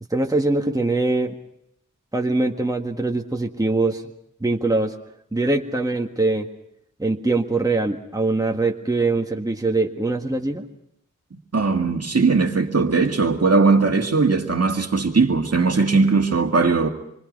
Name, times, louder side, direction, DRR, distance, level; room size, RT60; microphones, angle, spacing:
voice 1, 0.1-1.3 2.1-4.0 4.4-4.9 5.3-6.5 7.0-10.6, right 2 dB, 10° right, 1.7 m, -22 dB
voice 2, 11.5-16.9, right 4 dB, 50° right, 2.2 m, -19 dB
27.0 x 24.5 x 5.4 m
wide cardioid pair, 75°, 31 cm